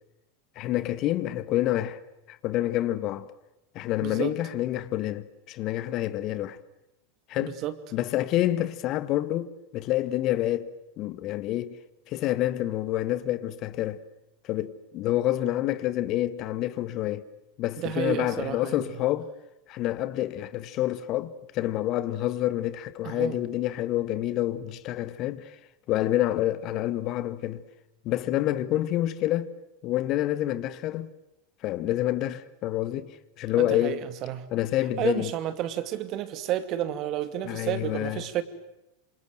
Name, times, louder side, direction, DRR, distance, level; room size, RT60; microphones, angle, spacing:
voice 1, 0.6-2.0 2.3-3.3 3.8-6.6 7.3-7.6 7.9-10.7 11.0-11.8 12.1-14.0 14.4-17.3 17.6-19.3 19.7-25.6 25.9-27.6 28.1-29.5 29.8-31.1 31.6-34.0 34.5-35.3 37.5-38.3, left 14 dB, 45° left, 1.7 m, -28 dB
voice 2, 4.0-4.3 7.4-7.7 17.8-19.0 23.0-23.4 33.6-34.5 35.0-38.4, right 12 dB, 45° right, 2.6 m, -31 dB
27.5 x 27.0 x 7.8 m
figure-of-eight pair, 90°, 0 cm